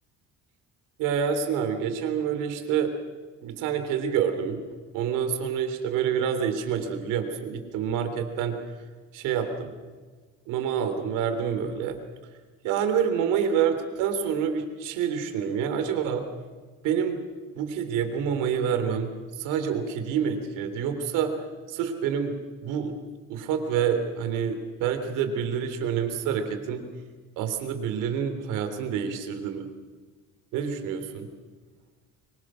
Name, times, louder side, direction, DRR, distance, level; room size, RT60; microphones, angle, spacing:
voice 1, 1.0-2.9 3.4-4.6 4.9-8.6 9.1-9.7 10.5-12.0 12.6-16.3 16.8-17.2 17.6-19.1 19.4-21.3 21.7-22.9 23.3-26.9 27.4-29.7 30.5-31.3, right 7 dB, 85° right, 8 dB, 3.5 m, -27 dB
25.0 x 24.0 x 6.4 m, 1.4 s
cardioid pair, 135°, 31 cm